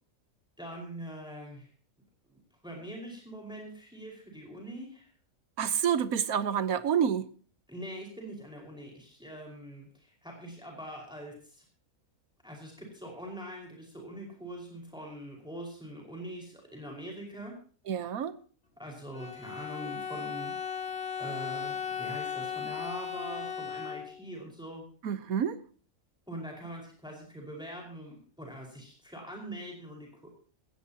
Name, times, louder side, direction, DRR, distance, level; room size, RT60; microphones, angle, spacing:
voice 1, 0.6-1.7 2.3-5.1 7.7-11.6 12.4-17.6 18.8-20.5 21.2-24.8 26.3-30.3, right 1 dB, 5° right, 0 dB, 5.1 m, -43 dB
voice 2, 5.6-7.3 17.9-18.3 25.0-25.6, right 8 dB, 75° right, 13 dB, 1.4 m, -28 dB
Bowed string instrument, 19.1-24.4, left 7 dB, 45° left, 2.1 m, -37 dB
19.5 x 16.0 x 2.9 m, 0.40 s
omnidirectional pair, 1.5 m